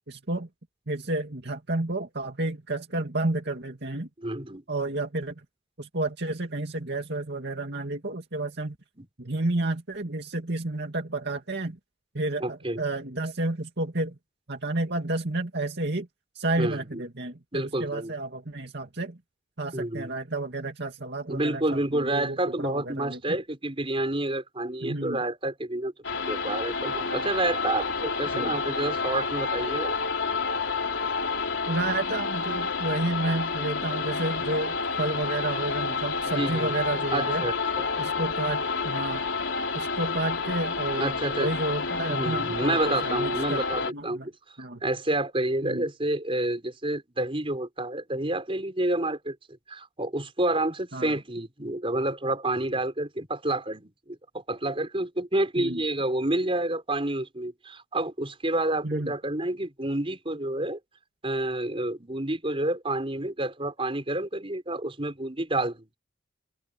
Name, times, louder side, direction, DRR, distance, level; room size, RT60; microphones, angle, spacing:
voice 1, 0.1-0.5 0.9-4.1 4.7-5.3 5.8-8.8 9.2-11.8 12.1-14.2 14.5-16.1 16.3-19.2 19.6-23.4 24.8-25.2 28.3-28.5 31.7-37.4 38.0-39.2 39.7-41.1 41.4-44.3 44.6-44.8 45.6-45.8 50.9-51.2 55.6-55.8 58.8-59.1, right 2 dB, 60° right, 2.5 m, -31 dB
voice 2, 4.2-4.6 9.0-9.1 12.4-12.8 16.6-17.0 17.5-18.1 19.7-20.1 21.3-25.9 26.3-29.9 36.2-36.7 37.1-37.9 41.0-41.5 42.1-44.3 44.8-49.4 49.7-54.2 54.5-60.8 61.2-65.9, right 1 dB, 30° right, 4.9 m, -29 dB
sound 1, 26.0-43.9, left 4 dB, 80° left, 3.7 m, -29 dB
open air
head